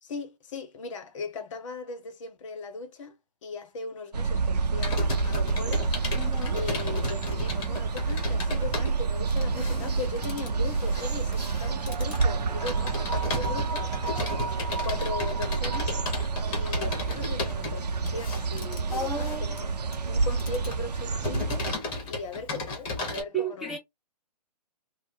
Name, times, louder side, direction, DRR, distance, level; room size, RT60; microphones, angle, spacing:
voice 1, 0.0-5.9 6.5-16.0 16.5-19.7 20.1-21.7 22.1-23.8, left 4 dB, 50° left, 0.8 m, -38 dB
sound 1, 4.1-21.8, right 4 dB, 75° right, 0.6 m, -29 dB
Computer keyboard, 4.8-23.2, left 2 dB, 25° left, 1.1 m, -35 dB
voice 2, 6.2-6.6 18.9-19.4 23.3-23.8, right 4 dB, ahead, 0.4 m, -32 dB
sound 2, 11.7-17.0, right 4 dB, 40° right, 0.8 m, -38 dB
2.6 x 2.1 x 3.5 m
hypercardioid pair, 135°, 21 cm